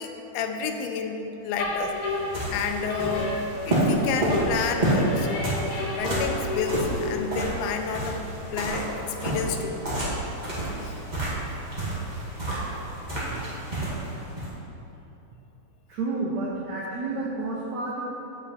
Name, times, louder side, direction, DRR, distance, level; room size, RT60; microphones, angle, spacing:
voice 1, 0.0-2.0 2.5-8.2 8.5-9.8 10.8-10.9, left 5 dB, 85° left, 5 dB, 2.5 m, -30 dB
sound 1, 1.6-3.9 4.3-7.1, left 2 dB, 65° left, 1.4 m, -32 dB
sound 2, 1.6-14.5, right 1 dB, 30° right, 0.7 m, -29 dB
voice 2, 15.9-18.0, right 3 dB, 80° right, -5 dB, 1.6 m, -30 dB
8.0 x 7.0 x 4.2 m, 2.9 s
omnidirectional pair, 4.3 m